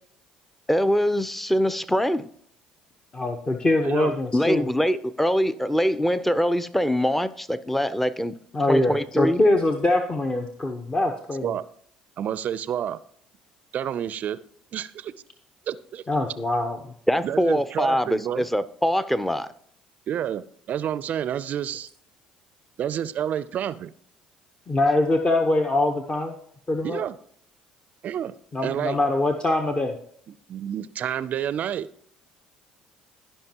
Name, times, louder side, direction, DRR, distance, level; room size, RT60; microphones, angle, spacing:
voice 1, 0.7-2.3 4.3-8.3 8.7-9.4 17.1-19.5, equal, 5° left, 0.6 m, -23 dB
voice 2, 3.1-4.7 8.5-11.5 16.1-16.9 24.7-26.3 26.7-27.0 28.5-29.9, left 2 dB, 30° left, 1.0 m, -23 dB
voice 3, 12.2-13.0 13.7-14.4 14.7-15.1 15.7-16.0 17.2-18.4 20.1-21.9 22.8-23.9 26.8-27.2 28.0-28.3 28.6-29.0 30.3-31.9, right 10 dB, 55° right, 0.4 m, -29 dB
16.0 x 5.4 x 2.9 m
hypercardioid pair, 60°, 3 cm